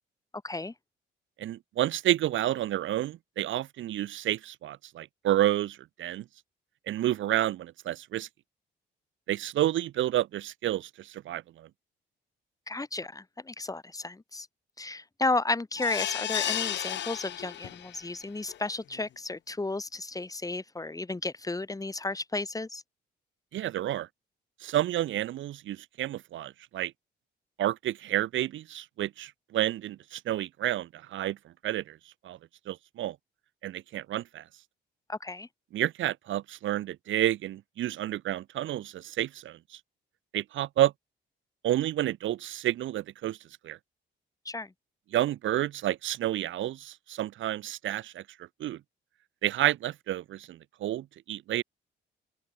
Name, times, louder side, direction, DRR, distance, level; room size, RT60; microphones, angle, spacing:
voice 1, 0.4-0.7 12.7-14.5 14.8-22.8 35.1-35.5 44.5-44.7, left 2 dB, 15° left, 2.3 m, -33 dB
voice 2, 1.4-6.2 6.9-8.3 9.3-11.7 23.5-24.1 24.6-26.9 27.6-32.0 32.2-32.4 32.7-33.2 33.6-34.4 35.7-39.8 40.3-40.9 41.6-43.4 43.6-43.8 45.1-48.2 48.6-48.8 49.4-51.6, right 13 dB, 75° right, 1.2 m, -30 dB
sound 1, 15.8-18.0 18.5-18.6 18.9-19.0, left 12 dB, 65° left, 0.8 m, -33 dB
open air
cardioid pair, 90°, 20 cm